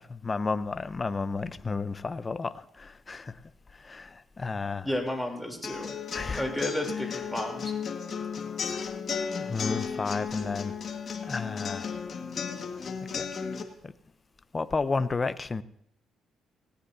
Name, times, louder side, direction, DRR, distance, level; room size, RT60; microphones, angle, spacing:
voice 1, 0.0-3.4 3.8-4.9 6.1-6.4 8.7-9.0 9.2-10.7 11.2-12.0 13.1-13.3 13.8-13.9 14.5-15.6, left 4 dB, 30° left, 13 dB, 0.7 m, -32 dB
voice 2, 4.8-5.9 6.4-7.7, left 1 dB, ahead, 1 dB, 3.3 m, -32 dB
sound 1, 5.6-13.6, left 6 dB, 55° left, 1.7 m, -34 dB
18.0 x 17.5 x 2.7 m, 0.74 s
cardioid pair, 90°, 0 cm